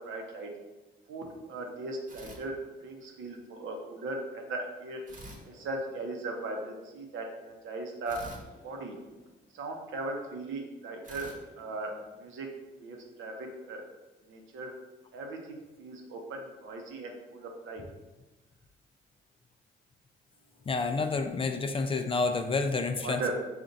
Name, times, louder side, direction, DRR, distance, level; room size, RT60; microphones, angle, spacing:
voice 1, 0.0-0.5 1.1-2.6 2.8-5.0 5.5-8.2 8.6-9.0 9.5-11.9 12.2-12.5 12.8-13.8 14.3-14.7 15.1-17.8 23.0-23.3, right 2 dB, 75° right, 2 dB, 0.8 m, -38 dB
sound 1, 2.1-3.2 5.1-6.4 8.0-9.7 11.0-12.6, right 1 dB, 40° right, 1.0 m, -50 dB
voice 2, 20.7-23.3, left 3 dB, 30° left, 7 dB, 0.3 m, -29 dB
4.3 x 2.4 x 3.9 m, 1.1 s
cardioid pair, 90°, 20 cm